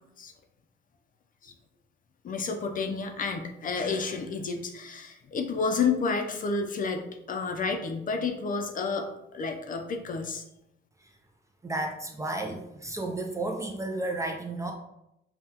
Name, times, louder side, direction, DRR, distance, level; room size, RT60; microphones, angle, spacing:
voice 1, 2.2-9.1 9.3-10.4, left 4 dB, 40° left, 5 dB, 0.5 m, -30 dB
voice 2, 11.6-14.7, right 2 dB, 15° right, 2 dB, 0.4 m, -32 dB
5.4 x 2.3 x 2.9 m, 0.84 s
cardioid pair, 125°, 21 cm